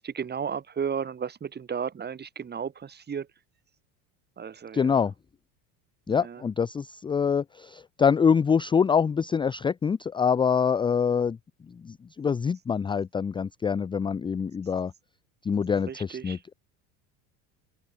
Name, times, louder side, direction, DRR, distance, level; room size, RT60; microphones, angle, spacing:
voice 1, 0.0-3.3 4.4-5.1 6.1-6.4 15.6-16.5, right 7 dB, 25° right, 1.8 m, -34 dB
voice 2, 4.7-5.1 6.1-11.4 11.8-14.9 15.4-16.5, left 6 dB, 15° left, 0.4 m, -25 dB
supercardioid pair, 95°, 38 cm